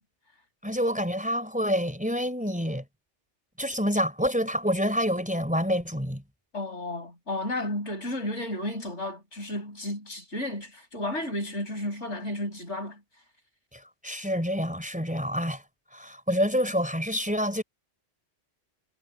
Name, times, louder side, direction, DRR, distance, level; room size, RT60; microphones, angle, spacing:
voice 1, 0.6-2.8 3.6-6.2 13.7-15.6 15.9-17.6, equal, 5° right, 3.7 m, -27 dB
voice 2, 6.5-13.0, left 1 dB, 70° left, 6.4 m, -33 dB
omnidirectional pair, 1.2 m